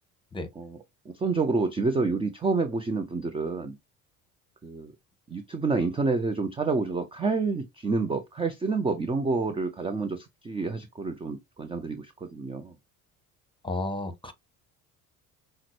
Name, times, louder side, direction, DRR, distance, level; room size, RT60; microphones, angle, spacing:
voice 1, 1.1-3.8 4.6-4.9 5.3-12.7, right 4 dB, 15° right, 0.5 m, -28 dB
voice 2, 13.6-14.3, left 2 dB, 10° left, 1.1 m, -32 dB
5.7 x 2.1 x 3.0 m
figure-of-eight pair, 60°, 42 cm